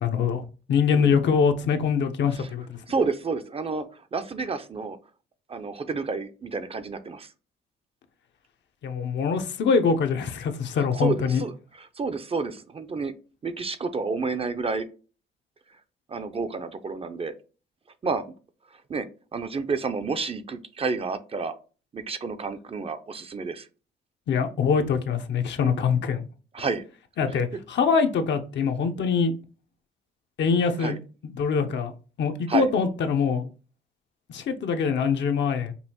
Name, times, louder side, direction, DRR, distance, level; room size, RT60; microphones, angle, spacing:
voice 1, 0.0-2.8 8.8-11.4 24.3-26.2 27.2-29.3 30.4-31.0 31.2-31.9 32.2-33.5 34.3-35.7, left 6 dB, 65° left, 0.7 m, -24 dB
voice 2, 2.9-5.0 5.5-7.3 11.0-13.1 13.4-14.9 16.1-17.3 18.0-18.2 18.9-21.5 21.9-23.7 25.6-25.9 26.5-26.8 30.8-31.0 32.5-32.7, right 4 dB, 30° right, 0.5 m, -30 dB
5.4 x 2.5 x 2.8 m
cardioid pair, 90°, 20 cm